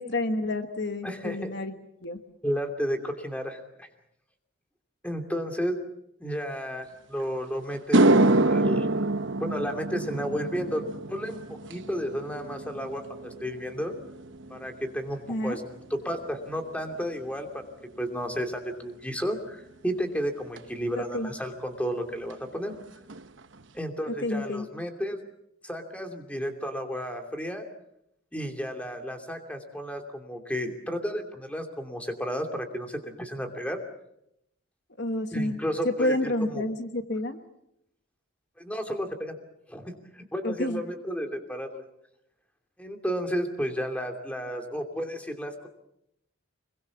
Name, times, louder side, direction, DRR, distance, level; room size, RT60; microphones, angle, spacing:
voice 1, 0.0-1.7 2.0-2.2 15.3-15.6 21.0-21.3 24.1-24.6 35.0-35.6 35.8-37.4 40.4-40.8, left 1 dB, 55° left, 7 dB, 1.5 m, -29 dB
voice 2, 1.0-1.5 2.4-3.9 5.0-5.8 6.2-9.1 9.4-10.8 11.1-11.4 11.7-13.9 14.5-15.6 15.9-17.7 18.0-22.7 23.7-25.2 25.6-27.7 28.3-33.8 35.3-36.6 38.6-39.4 39.7-41.8 42.8-45.7, equal, 5° left, 4 dB, 2.7 m, -32 dB
sound 1, 7.2-7.3 7.7-16.2 16.5-17.0 20.6-20.7 22.3-22.4 22.7-22.8 23.1-23.6, right 2 dB, 60° right, 1.0 m, -27 dB
25.5 x 22.5 x 7.2 m, 0.79 s
head